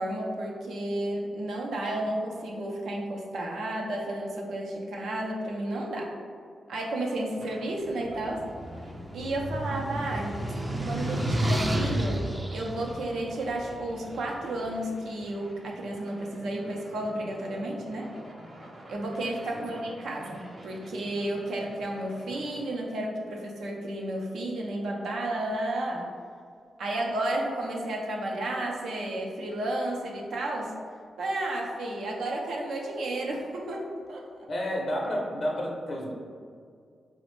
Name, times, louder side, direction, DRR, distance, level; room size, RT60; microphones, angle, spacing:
voice 1, 0.0-6.1 6.7-8.5 9.1-10.4 10.8-18.1 18.9-26.1 26.8-30.7 31.2-34.3, right 1 dB, 80° right, -1 dB, 0.5 m, -32 dB
sound 1, 7.4-22.8, right 1 dB, 35° right, 0.8 m, -49 dB
sound 2, 8.1-14.3, right 1 dB, 20° right, 0.4 m, -31 dB
voice 2, 34.5-36.1, equal, 50° left, -2 dB, 0.5 m, -30 dB
4.0 x 2.0 x 3.1 m, 2.2 s
cardioid pair, 95°, 0 cm